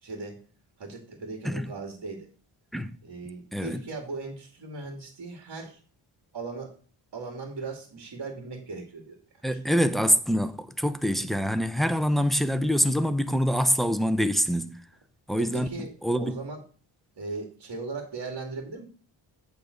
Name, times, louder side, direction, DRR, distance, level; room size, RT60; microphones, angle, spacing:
voice 1, 0.0-0.4 0.8-2.3 3.0-5.8 6.3-6.8 7.1-9.2 9.5-9.6 11.1-11.3 15.4-16.6 17.2-18.8, right 3 dB, 55° right, 2.5 m, -38 dB
voice 2, 3.5-3.8 9.4-14.9 15.3-16.4, equal, ahead, 0.7 m, -25 dB
8.6 x 4.1 x 7.0 m
cardioid pair, 95°, 49 cm